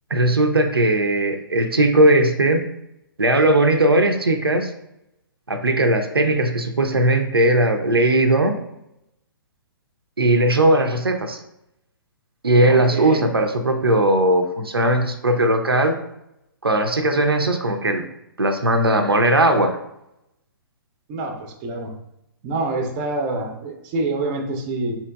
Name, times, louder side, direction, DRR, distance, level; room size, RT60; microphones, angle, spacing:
voice 1, 0.1-2.6 3.2-4.7 5.5-8.6 10.2-11.4 12.4-16.0 16.6-18.0 18.4-19.8, right 1 dB, 85° right, 5 dB, 0.4 m, -18 dB
voice 2, 12.7-13.3 21.1-21.9 22.4-25.0, right 2 dB, 25° right, 4 dB, 0.5 m, -26 dB
4.3 x 2.8 x 2.2 m, 0.84 s
figure-of-eight pair, 125°, 12 cm